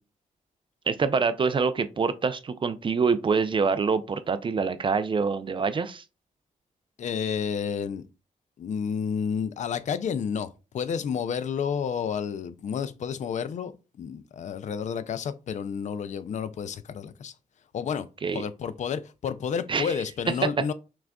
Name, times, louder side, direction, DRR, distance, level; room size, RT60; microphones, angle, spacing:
voice 1, 0.9-6.0 18.2-18.4 19.7-19.9, right 5 dB, 35° right, 0.4 m, -25 dB
voice 2, 7.0-8.0 8.6-13.7 14.0-17.3 17.7-18.1 18.3-20.7, left 7 dB, 55° left, 0.4 m, -30 dB
5.9 x 2.4 x 2.2 m
cardioid pair, 90°, 14 cm